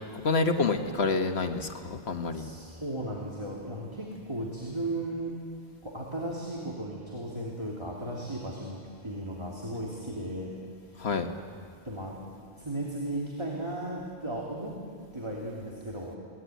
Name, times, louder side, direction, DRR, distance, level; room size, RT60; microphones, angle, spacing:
voice 1, 0.1-2.5 11.0-11.3, left 3 dB, 85° left, 6 dB, 1.6 m, -28 dB
voice 2, 2.3-5.3 5.8-10.5 10.9-11.0 11.8-12.2 12.6-14.8 15.1-16.2, right 1 dB, 25° right, -3 dB, 2.9 m, -36 dB
23.0 x 19.0 x 9.2 m, 2.2 s
omnidirectional pair, 1.1 m